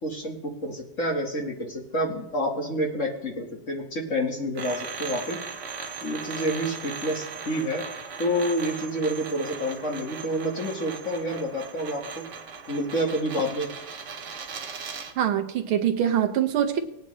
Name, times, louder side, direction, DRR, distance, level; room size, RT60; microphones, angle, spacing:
voice 1, 0.0-5.4 6.0-7.8 8.2-12.2 12.7-13.7, equal, 40° left, 1 dB, 1.7 m, -28 dB
sound 1, 4.5-15.2, right 5 dB, 50° right, 0.9 m, -38 dB
voice 2, 15.2-16.8, right 9 dB, 75° right, 6 dB, 1.7 m, -24 dB
19.5 x 9.1 x 3.1 m, 0.83 s
omnidirectional pair, 2.3 m